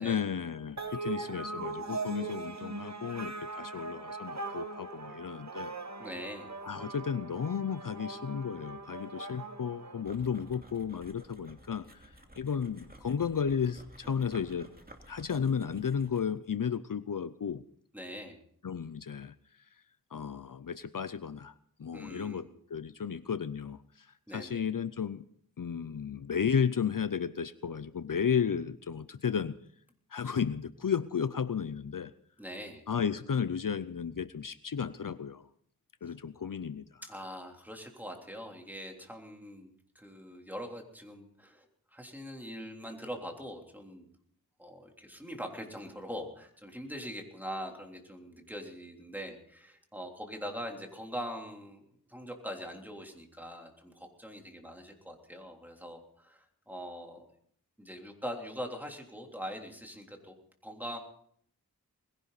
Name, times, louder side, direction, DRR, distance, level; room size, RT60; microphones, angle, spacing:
voice 1, 0.0-5.7 6.6-14.7 15.1-17.6 18.6-19.3 20.1-21.5 21.8-25.2 25.6-29.6 30.1-32.1 32.9-35.5 36.0-37.0, left 7 dB, 60° left, 14 dB, 0.6 m, -33 dB
sound 1, 0.8-10.6, right 3 dB, 45° right, 1.4 m, -40 dB
voice 2, 6.0-6.5 17.9-18.4 21.9-22.5 24.3-24.7 32.4-32.9 37.0-44.0 44.6-51.8 52.1-57.3 57.8-60.3 60.6-61.0, equal, 5° right, 2 dB, 3.4 m, -42 dB
sound 2, 10.0-16.4, right 1 dB, 25° right, 2.6 m, -54 dB
20.5 x 16.5 x 4.1 m, 0.63 s
wide cardioid pair, 50°, 37 cm